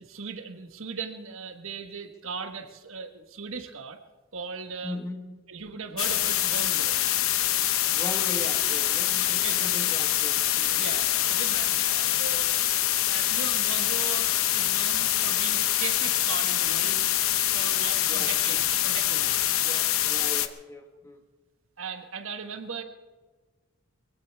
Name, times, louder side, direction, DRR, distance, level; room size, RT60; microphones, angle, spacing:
voice 1, 0.0-4.0 4.3-5.0 5.5-7.0 9.4-9.6 10.8-12.8 13.0-17.1 17.5-19.3 21.8-22.8, right 5 dB, 70° right, 7 dB, 1.3 m, -38 dB
voice 2, 4.8-5.3 7.9-10.9 18.0-18.4 19.6-21.2, left 1 dB, 15° left, 4 dB, 1.5 m, -39 dB
sound 1, 6.0-20.5, left 12 dB, 80° left, 0.9 m, -25 dB
21.5 x 16.5 x 3.5 m, 1.3 s
head